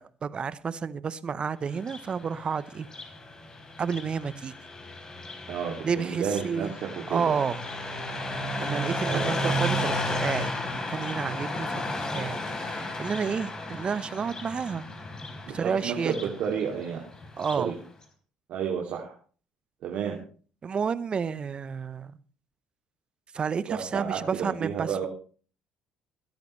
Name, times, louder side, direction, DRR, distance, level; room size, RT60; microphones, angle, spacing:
voice 1, 0.0-2.9 3.8-4.5 5.8-6.7 7.1-7.6 8.6-14.9 15.5-16.1 17.4-17.7 20.6-22.2 23.3-25.1, right 6 dB, 40° right, 16 dB, 0.9 m, -30 dB
Car passing by, 1.7-17.7, left 1 dB, 30° left, 3.9 m, -33 dB
voice 2, 5.5-6.7 6.9-7.3 9.1-9.3 15.6-17.0 17.6-17.7 18.5-19.1 19.8-20.2 23.7-25.1, right 7 dB, 65° right, -1 dB, 2.6 m, -31 dB
21.0 x 10.5 x 3.2 m, 0.40 s
hypercardioid pair, 60°, 3 cm